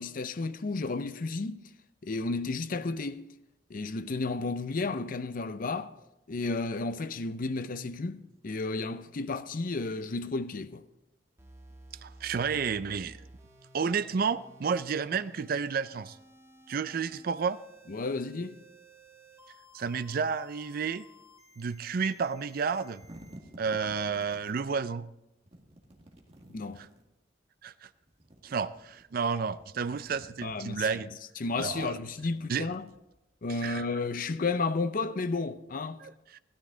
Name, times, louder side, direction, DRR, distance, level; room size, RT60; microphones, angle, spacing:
voice 1, 0.0-1.6 2.0-3.2 3.7-5.9 6.3-10.8 17.9-18.6 26.5-26.8 30.4-31.0 31.4-32.8 33.4-36.0, left 3 dB, 50° left, 0.6 m, -32 dB
sound 1, 11.4-23.4, right 1 dB, 15° right, 1.5 m, -55 dB
voice 2, 12.0-13.2 13.7-16.2 16.7-17.6 19.7-21.1 21.6-23.0 23.6-25.1 27.6-27.9 28.4-31.1 31.6-32.0 32.5-32.7 33.6-33.9 36.0-36.4, right 5 dB, 50° right, 0.4 m, -31 dB
sound 2, 23.0-24.7 25.5-27.1 28.0-29.0 29.4-30.9 31.5-33.3, right 1 dB, 35° right, 2.0 m, -53 dB
16.0 x 13.0 x 3.8 m
head